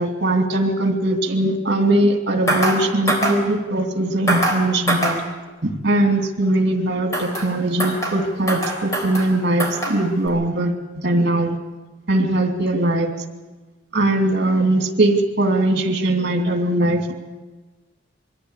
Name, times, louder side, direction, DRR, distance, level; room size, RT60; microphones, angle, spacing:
voice 1, 0.0-5.2 5.6-11.6 12.1-13.1 13.9-17.1, right 1 dB, 60° right, 4 dB, 2.6 m, -20 dB
sound 1, 2.5-2.8 3.1-3.4 4.3-4.6 4.9-5.2 7.1-7.5 7.8-8.2 8.5-9.3 9.6-10.0 10.3-10.4, right 1 dB, 15° left, 4.0 m, -23 dB
22.5 x 15.0 x 8.2 m, 1.3 s
head